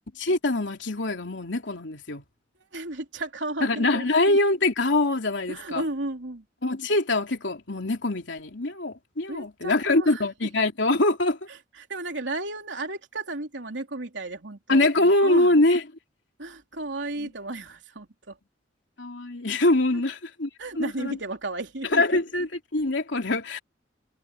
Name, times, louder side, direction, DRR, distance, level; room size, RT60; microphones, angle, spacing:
voice 1, 0.1-2.2 3.6-5.8 6.6-11.4 14.7-15.8 17.2-17.3 19.0-20.5 20.7-21.2 21.8-23.6, left 2 dB, 80° left, 2.9 m, -24 dB
voice 2, 2.7-4.0 5.5-6.4 9.3-10.2 11.9-14.9 15.2-15.6 16.4-18.3 20.6-22.2, right 2 dB, 85° right, 3.3 m, -33 dB
head